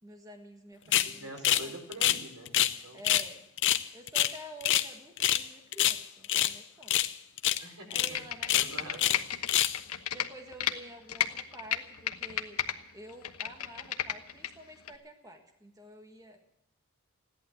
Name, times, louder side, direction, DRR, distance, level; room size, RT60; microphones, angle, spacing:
voice 1, 0.0-1.3 1.6-1.7 2.9-3.5 3.9-7.0 7.9-9.1 10.1-12.6 12.9-16.4, right 1 dB, 15° right, 3 dB, 1.6 m, -49 dB
voice 2, 0.8-3.0 7.6-8.2 8.5-9.2, right 2 dB, 90° right, 2 dB, 4.9 m, -45 dB
sound 1, 0.9-1.1 1.4-1.7 1.9-2.8 3.0-3.3 3.6-4.9 5.2-5.5 5.7-6.5 6.9-7.1 7.4-7.6 7.9-8.1 8.4-9.2 9.5-9.8, left 12 dB, 55° left, 0.7 m, -26 dB
Computer keyboard, 8.0-10.7 11.1-12.8 13.1-14.5 14.9-15.0, left 10 dB, 85° left, 1.1 m, -33 dB
16.0 x 11.5 x 7.8 m, 0.83 s
head